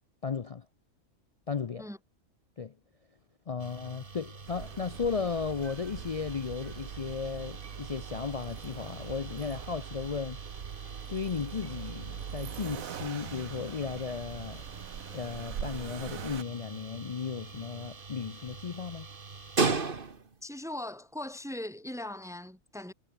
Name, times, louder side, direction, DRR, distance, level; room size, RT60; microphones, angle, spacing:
voice 1, 0.2-0.6 1.5-1.9 2.6-2.7 3.5-10.4 11.1-14.6 15.1-19.1, left 5 dB, 55° left, 0.4 m, -35 dB
sound 1, 3.6-20.4, right 4 dB, 40° right, 1.9 m, -40 dB
Accelerating revving vroom, 4.5-16.4, right 8 dB, 85° right, 1.6 m, -42 dB
voice 2, 20.4-22.9, left 1 dB, ahead, 3.2 m, -39 dB
omnidirectional pair, 1.4 m